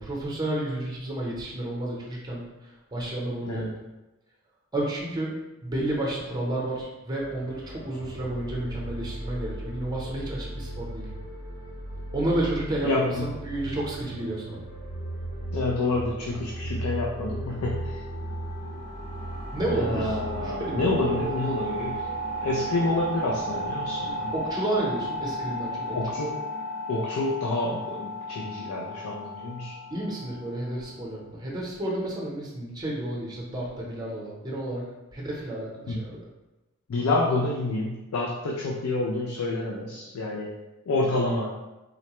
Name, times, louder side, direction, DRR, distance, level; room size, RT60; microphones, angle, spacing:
voice 1, 0.0-3.7 4.7-5.3 5.6-11.0 12.1-14.6 19.5-21.0 21.5-21.6 24.3-26.2 29.9-34.8 35.1-36.2, right 1 dB, 20° right, -4 dB, 0.7 m, -31 dB
voice 2, 3.4-3.7 12.8-13.3 15.5-18.0 19.7-22.0 22.4-24.3 25.9-26.4 26.9-29.7 35.9-36.0 36.9-40.5 40.9-41.6, left 2 dB, 85° left, -2 dB, 0.4 m, -28 dB
sound 1, 7.2-24.3, right 1 dB, 55° left, 0.8 m, -37 dB
sound 2, 17.5-31.0, equal, 25° left, 0.7 m, -35 dB
3.7 x 2.1 x 2.9 m, 1.0 s
head